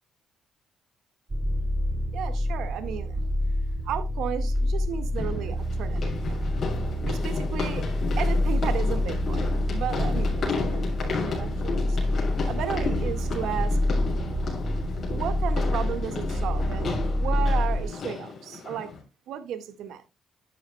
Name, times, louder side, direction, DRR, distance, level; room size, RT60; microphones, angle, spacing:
sound 1, 1.3-17.8, left 1 dB, 25° right, 1.4 m, -27 dB
voice 1, 2.1-3.2 3.8-6.5 7.1-7.9 8.2-12.1 12.5-13.8 15.1-18.9 19.3-20.0, right 9 dB, 80° right, 1.6 m, -34 dB
sound 2, 3.2-3.3 5.1-19.0, left 4 dB, 50° left, 6.9 m, -33 dB
12.0 x 11.0 x 2.2 m
cardioid pair, 90°, 0 cm